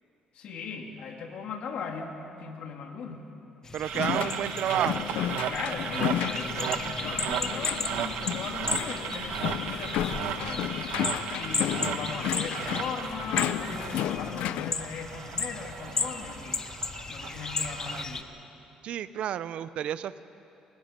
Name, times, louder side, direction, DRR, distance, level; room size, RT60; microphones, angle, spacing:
voice 1, 0.3-3.3 5.4-10.7 11.3-16.6 17.1-18.3, left 5 dB, 65° left, 2 dB, 2.6 m, -38 dB
sound 1, 3.6-18.2, left 4 dB, 30° left, 1.0 m, -36 dB
voice 2, 3.7-5.1 18.8-20.2, right 10 dB, 65° right, 15 dB, 0.7 m, -31 dB
sound 2, 3.8-18.0, right 9 dB, 80° right, 1.1 m, -35 dB
sound 3, 3.9-14.7, left 12 dB, 80° left, 0.5 m, -33 dB
29.5 x 19.5 x 5.3 m, 2.9 s
cardioid pair, 115°, 2 cm